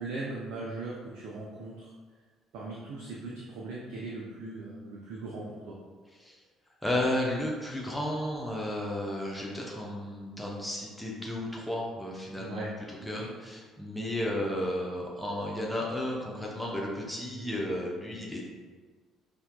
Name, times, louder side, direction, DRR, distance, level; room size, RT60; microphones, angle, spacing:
voice 1, 0.0-1.9 2.5-5.8 12.4-12.7 13.0-13.3 17.2-17.5, right 2 dB, 60° right, -3 dB, 0.5 m, -39 dB
voice 2, 6.8-18.4, left 1 dB, 5° left, -3 dB, 0.7 m, -33 dB
5.6 x 2.8 x 2.2 m, 1.4 s
figure-of-eight pair, 50°, 0 cm